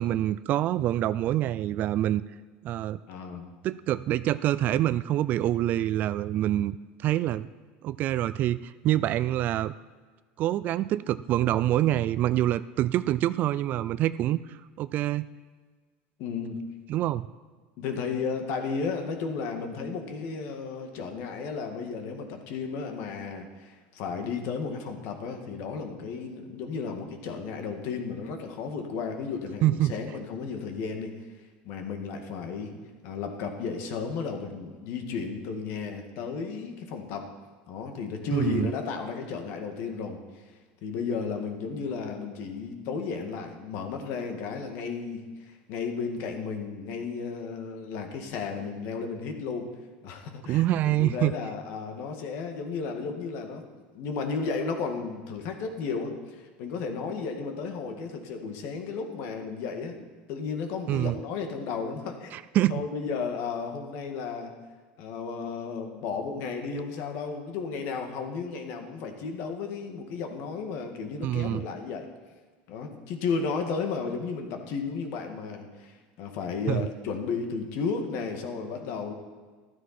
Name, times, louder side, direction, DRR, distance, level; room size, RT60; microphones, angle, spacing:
voice 1, 0.0-2.2 2.6-3.0 3.6-6.8 7.0-7.5 7.8-9.7 10.4-15.3 16.9-17.3 29.6-30.0 38.3-38.7 50.5-51.3 60.9-61.2 62.3-62.8 71.2-71.6 76.7-76.9, right 13 dB, 40° right, 16 dB, 0.3 m, -26 dB
voice 2, 3.1-3.5 16.2-16.7 17.8-31.3 31.6-32.8 33.0-37.3 37.7-40.2 40.8-49.7 50.0-53.6 53.9-62.3 62.7-64.5 65.0-72.1 72.7-79.1, left 5 dB, 55° left, 5 dB, 1.9 m, -33 dB
14.0 x 12.5 x 4.3 m, 1.5 s
cardioid pair, 155°, 5 cm